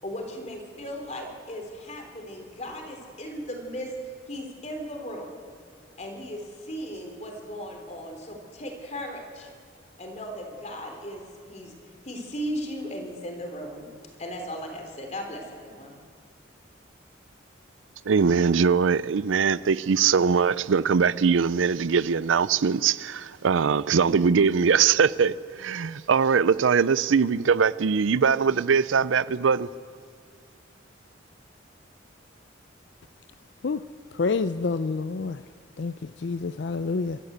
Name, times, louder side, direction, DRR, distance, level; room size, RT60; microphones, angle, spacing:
voice 1, 0.0-5.3 6.0-9.5 10.0-11.7 12.0-13.9 14.2-16.0, equal, 35° left, 3.4 m, -37 dB
voice 2, 18.1-29.7, right 6 dB, 85° right, 0.5 m, -22 dB
voice 3, 34.1-35.4 35.8-37.2, left 4 dB, 65° left, 0.5 m, -28 dB
27.5 x 14.0 x 8.0 m
head